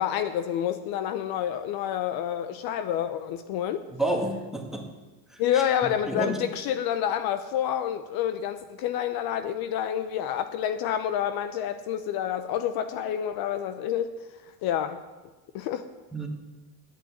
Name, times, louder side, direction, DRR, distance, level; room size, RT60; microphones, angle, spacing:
voice 1, 0.0-3.8 5.4-14.1 14.6-15.0 15.5-15.8, left 10 dB, 60° left, 9 dB, 0.8 m, -28 dB
voice 2, 3.9-4.9 5.3-5.6 6.1-6.4 16.1-16.3, right 1 dB, ahead, 1 dB, 1.8 m, -30 dB
8.9 x 8.3 x 8.4 m, 1.2 s
supercardioid pair, 110°, 42 cm